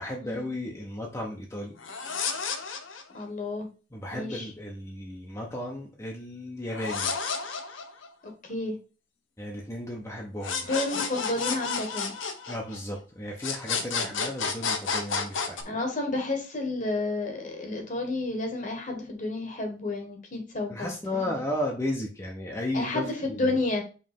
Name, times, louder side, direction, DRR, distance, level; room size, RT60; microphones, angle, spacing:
voice 1, 0.0-1.8 3.9-7.2 9.4-10.7 12.5-15.6 20.7-23.6, left 1 dB, 15° left, -1 dB, 1.0 m, -34 dB
sound 1, 1.8-3.2 6.7-8.3 10.4-13.0 13.4-15.6, left 5 dB, 90° left, 1.0 m, -31 dB
voice 2, 3.1-3.7 4.1-4.4 8.4-8.8 10.7-12.1 15.6-21.3 22.7-23.8, left 2 dB, 45° left, 3 dB, 1.7 m, -31 dB
5.4 x 3.5 x 5.3 m, 0.35 s
head